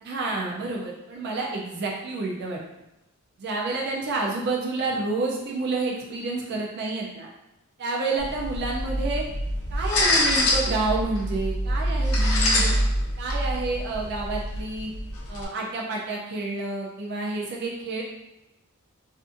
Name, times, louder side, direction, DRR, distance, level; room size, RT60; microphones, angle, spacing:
voice 1, 0.0-2.6 3.4-7.3 7.8-9.2 9.7-12.7 13.2-14.9 15.3-18.0, right 3 dB, 50° right, -2 dB, 0.4 m, -29 dB
sound 1, 8.2-15.5, left 1 dB, 80° left, 0.5 m, -25 dB
2.5 x 2.4 x 2.5 m, 0.93 s
head